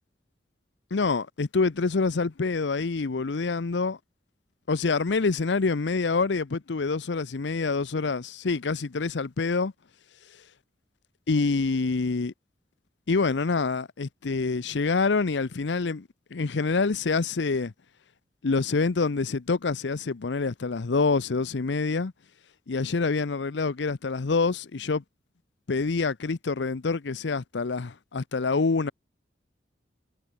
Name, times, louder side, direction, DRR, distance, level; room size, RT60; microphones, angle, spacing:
voice 1, 0.9-4.0 4.7-9.7 11.3-12.3 13.1-17.7 18.4-22.1 22.7-25.0 25.7-28.9, left 4 dB, 75° left, 0.7 m, -26 dB
head